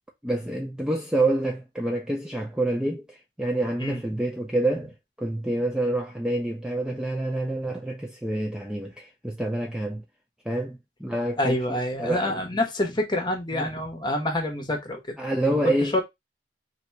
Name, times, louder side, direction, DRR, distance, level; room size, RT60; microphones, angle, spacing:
voice 1, 0.2-4.9 5.2-10.0 10.5-12.4 13.5-13.7 15.2-16.0, right 1 dB, 5° right, 0.4 m, -27 dB
voice 2, 11.4-15.1 15.6-16.0, left 1 dB, 25° left, 0.9 m, -27 dB
2.9 x 2.7 x 4.4 m
head